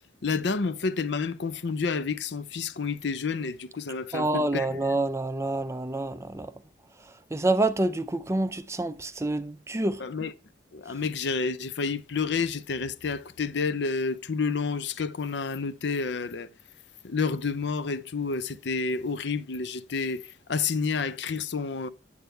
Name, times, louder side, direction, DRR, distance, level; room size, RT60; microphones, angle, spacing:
voice 1, 0.2-4.8 10.0-10.3 10.7-16.5 17.0-21.9, left 4 dB, 60° left, 0.6 m, -29 dB
voice 2, 4.1-6.5 7.3-10.0, right 2 dB, 15° right, 0.4 m, -27 dB
8.6 x 7.9 x 3.2 m
head